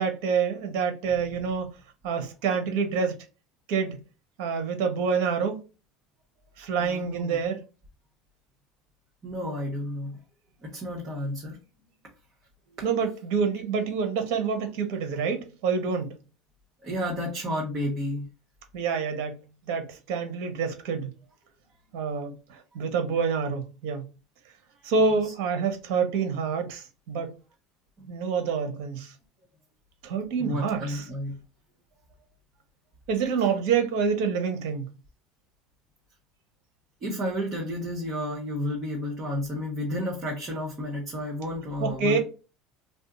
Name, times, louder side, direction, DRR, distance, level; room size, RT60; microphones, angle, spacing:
voice 1, 0.0-1.7 2.0-3.2 3.7-4.0 4.4-5.6 6.6-7.6 12.8-16.1 18.7-19.4 19.7-21.1 21.9-24.0 24.8-27.3 28.1-29.1 30.0-31.0 33.1-34.9 41.8-42.2, right 5 dB, 70° right, 0.9 m, -27 dB
voice 2, 6.8-7.4 9.2-10.2 10.6-11.6 16.8-18.3 25.2-25.3 28.0-28.1 30.4-31.4 37.0-42.2, left 1 dB, 35° right, 1.1 m, -31 dB
2.6 x 2.2 x 3.7 m
supercardioid pair, 110°, 0 cm